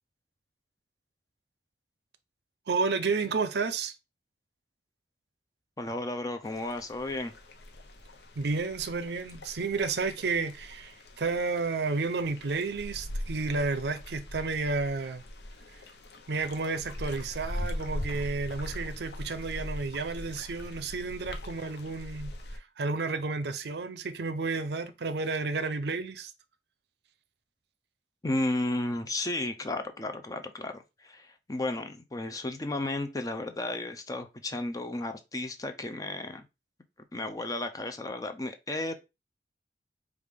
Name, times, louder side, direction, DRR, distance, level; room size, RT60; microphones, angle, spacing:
voice 1, 2.7-3.9 8.4-15.2 16.3-22.3 22.8-26.3, right 4 dB, 70° right, 0.5 m, -31 dB
voice 2, 5.8-7.3 28.2-36.4 37.1-38.9, left 2 dB, 20° left, 0.5 m, -33 dB
sound 1, 6.4-22.6, left 1 dB, 70° left, 0.7 m, -41 dB
5.0 x 2.4 x 3.5 m
head